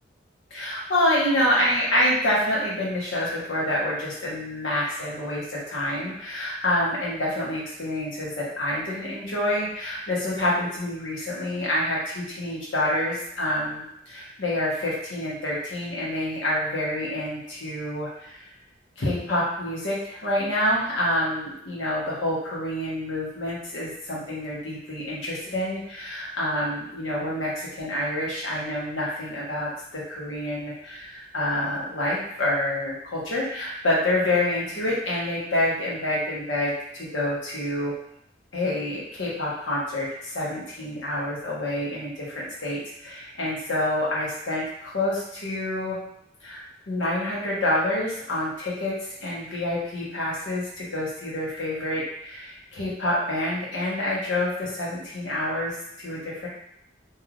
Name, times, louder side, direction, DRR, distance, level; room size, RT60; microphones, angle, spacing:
voice 1, 0.5-18.5 19.0-37.9 38.5-46.0 46.4-46.6 46.9-48.9 49.2-56.5, left 1 dB, 85° left, -6 dB, 1.1 m, -27 dB
3.2 x 2.7 x 2.5 m, 0.75 s
head